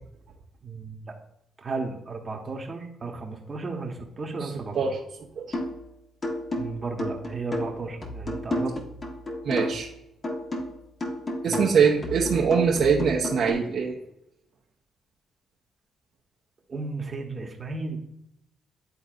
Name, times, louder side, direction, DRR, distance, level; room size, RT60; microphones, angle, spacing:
voice 1, 0.6-1.1 1.6-5.0 6.6-8.8 11.5-11.6 16.7-18.0, right 3 dB, 35° right, 2 dB, 1.2 m, -34 dB
sound 1, 5.5-5.8 6.2-9.9 10.2-13.5, left 1 dB, 35° left, 1.4 m, -32 dB
voice 2, 9.4-9.9 11.4-13.9, right 6 dB, 60° right, -2 dB, 0.9 m, -23 dB
11.0 x 3.9 x 2.5 m, 0.83 s
cardioid pair, 90°, 0 cm